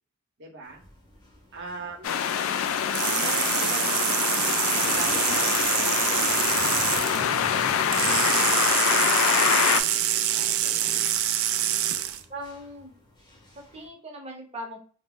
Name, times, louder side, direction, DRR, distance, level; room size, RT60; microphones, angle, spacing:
voice 1, 0.4-0.8 1.5-2.2 3.0-6.4 7.0-9.9 10.1-10.9, right 2 dB, 60° right, 1 dB, 1.0 m, -42 dB
sound 1, 0.6-13.9, left 2 dB, 20° left, 0.8 m, -46 dB
sound 2, 2.0-9.8, left 8 dB, 75° left, 0.3 m, -25 dB
sound 3, 2.9-7.2 7.9-12.2, right 11 dB, 80° right, 0.3 m, -26 dB
voice 2, 12.3-12.9 13.5-14.8, right 1 dB, 30° right, -1 dB, 0.9 m, -39 dB
2.5 x 2.1 x 3.6 m, 0.43 s
head